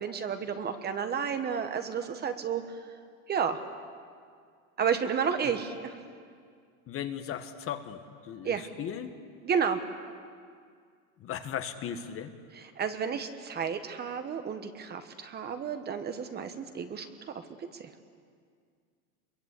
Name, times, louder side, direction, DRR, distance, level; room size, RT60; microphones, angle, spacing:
voice 1, 0.0-2.6 3.3-3.6 4.8-6.0 8.4-8.6 9.4-9.8 12.5-17.1 17.3-17.4 17.7-17.9, right 7 dB, 25° right, 8 dB, 1.3 m, -31 dB
voice 2, 6.9-9.1 11.2-12.4, left 9 dB, 30° left, 8 dB, 1.5 m, -37 dB
26.0 x 23.0 x 8.4 m, 2.1 s
supercardioid pair, 140°, 42 cm